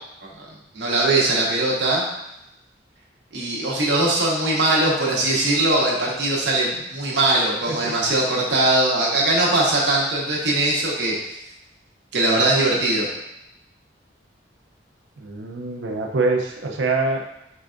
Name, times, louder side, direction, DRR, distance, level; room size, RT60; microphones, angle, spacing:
voice 1, 0.7-2.0 3.3-11.1 12.1-13.1, right 2 dB, 70° right, -4 dB, 1.1 m, -20 dB
voice 2, 7.7-8.0 15.2-17.3, right 3 dB, 90° right, 2 dB, 0.6 m, -25 dB
4.9 x 3.3 x 2.5 m, 0.85 s
head